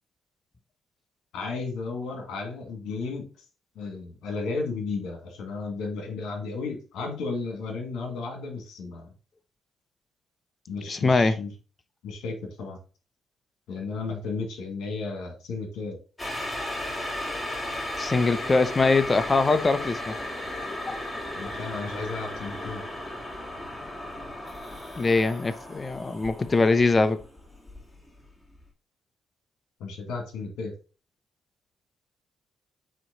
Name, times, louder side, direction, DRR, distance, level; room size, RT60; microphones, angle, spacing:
voice 1, 1.3-3.3 3.8-9.1 10.7-11.5 12.0-12.8 13.7-16.0 21.4-22.8 29.8-30.7, left 4 dB, 80° left, 2.1 m, -34 dB
voice 2, 10.9-11.4 18.0-20.2 20.7-21.0 25.0-27.2, left 3 dB, 30° left, 0.8 m, -23 dB
sound 1, 16.2-28.3 28.6-28.7, left 1 dB, 10° left, 1.9 m, -35 dB
7.6 x 3.1 x 4.0 m
cardioid pair, 90°, 0 cm